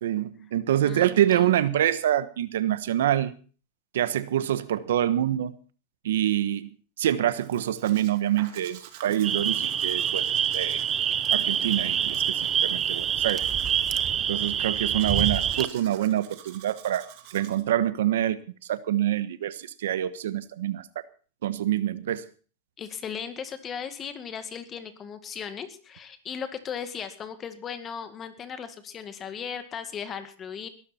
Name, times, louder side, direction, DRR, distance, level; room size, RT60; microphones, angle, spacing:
voice 1, 0.0-3.3 3.9-5.6 6.0-6.7 7.0-10.2 10.5-10.8 11.3-13.5 14.3-18.4 18.7-20.8 21.4-22.3, right 12 dB, 85° right, 14 dB, 1.2 m, -26 dB
voice 2, 0.8-1.5 14.5-14.7 22.8-30.7, left 7 dB, 25° left, 9 dB, 1.9 m, -37 dB
Domestic sounds home sounds, 7.4-17.6, right 11 dB, 55° right, 3.0 m, -49 dB
sound 1, 9.2-15.7, right 9 dB, 25° right, 0.9 m, -26 dB
21.0 x 13.0 x 4.4 m, 0.39 s
supercardioid pair, 145°, 0 cm